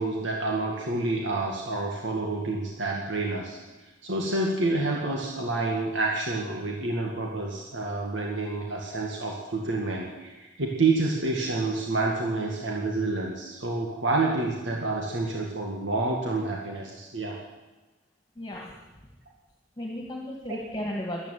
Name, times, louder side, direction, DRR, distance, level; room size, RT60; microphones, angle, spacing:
voice 1, 0.0-3.6 4.0-17.4, right 2 dB, 85° right, -1 dB, 2.0 m, -28 dB
voice 2, 18.4-18.8 19.8-21.3, left 1 dB, 20° left, -1 dB, 2.1 m, -34 dB
13.0 x 12.0 x 9.1 m, 1.1 s
head